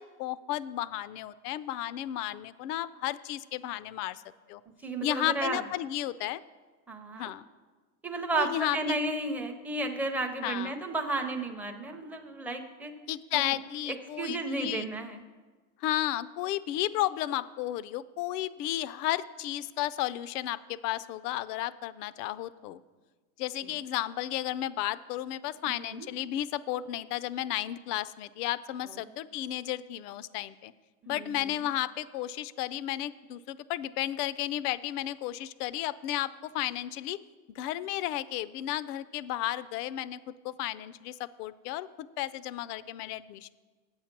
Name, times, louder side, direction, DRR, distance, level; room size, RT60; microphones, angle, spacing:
voice 1, 0.0-4.2 4.5-4.6 5.0-6.4 7.1-7.5 8.4-9.0 10.4-10.8 13.1-14.9 15.8-22.8 23.4-30.7 31.1-37.2 37.5-40.2 40.4-41.9 42.2-43.5, left 13 dB, 90° left, 17 dB, 0.5 m, -33 dB
voice 2, 4.8-5.6 6.9-7.3 8.0-12.9 13.3-13.5 14.2-15.2 25.7-26.1 31.0-31.4, right 2 dB, 5° right, 3 dB, 0.4 m, -33 dB
8.8 x 8.2 x 5.9 m, 1.4 s
supercardioid pair, 145°, 45 cm